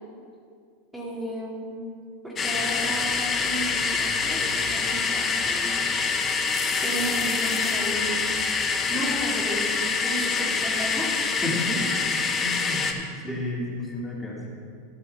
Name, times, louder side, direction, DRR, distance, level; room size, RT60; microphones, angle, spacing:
voice 1, 0.9-1.7 2.2-5.8 6.8-8.2 8.9-11.1 13.3-13.4, right 1 dB, 5° right, -7 dB, 2.4 m, -34 dB
sound 1, 2.4-12.9, left 5 dB, 30° left, 1.1 m, -25 dB
voice 2, 11.4-11.9 12.4-14.5, left 1 dB, 10° left, -5 dB, 2.8 m, -32 dB
13.0 x 6.7 x 4.3 m, 2.3 s
hypercardioid pair, 90°, 0 cm